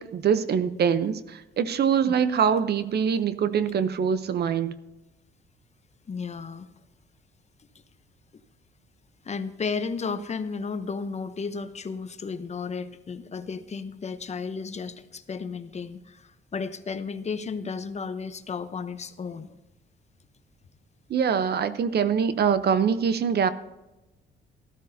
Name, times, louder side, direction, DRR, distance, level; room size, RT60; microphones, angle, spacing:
voice 1, 0.0-4.8 21.1-23.5, right 7 dB, 55° right, 13 dB, 0.7 m, -24 dB
voice 2, 6.1-6.7 9.2-19.5, left 5 dB, 35° left, 11 dB, 0.8 m, -33 dB
13.5 x 13.0 x 2.7 m, 1.0 s
cardioid pair, 90°, 20 cm